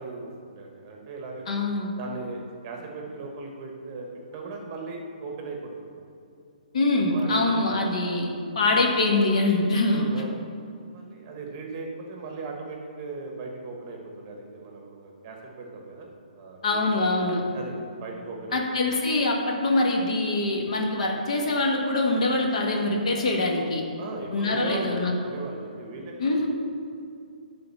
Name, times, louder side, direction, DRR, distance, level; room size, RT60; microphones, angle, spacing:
voice 1, 0.0-1.5 2.0-6.0 7.1-7.7 8.5-8.8 9.9-10.4 10.9-16.1 16.3-16.8 17.5-18.6 24.0-26.5, right 3 dB, 20° right, 1 dB, 1.1 m, -38 dB
voice 2, 1.5-1.9 6.7-8.3 8.5-10.0 16.6-17.4 18.5-23.8 24.3-25.1 26.2-26.5, left 2 dB, 50° left, 1 dB, 1.4 m, -24 dB
9.5 x 3.8 x 7.2 m, 2.5 s
hypercardioid pair, 170°, 5 cm